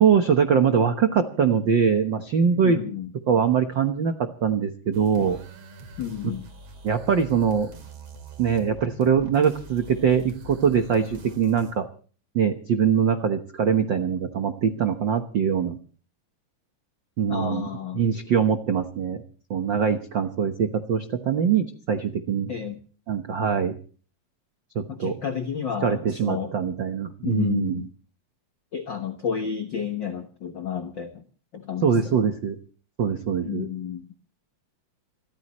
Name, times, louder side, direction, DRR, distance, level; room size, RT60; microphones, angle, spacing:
voice 1, 0.0-2.8 3.3-5.4 6.2-6.4 6.8-7.7 8.4-11.9 12.3-15.8 17.2-17.7 17.9-19.2 19.5-22.5 23.1-23.7 24.7-25.1 25.8-27.8 31.8-32.6 33.0-33.7, right 7 dB, 85° right, 7 dB, 1.0 m, -23 dB
voice 2, 2.6-3.1 6.0-6.5 17.3-18.0 22.5-22.8 24.9-26.5 27.2-27.9 28.7-31.2 31.5-32.3 33.4-34.1, left 8 dB, 75° left, 6 dB, 1.0 m, -31 dB
sound 1, 4.9-11.7, right 2 dB, 50° right, 3.6 m, -44 dB
27.5 x 14.0 x 3.1 m, 0.41 s
omnidirectional pair, 3.9 m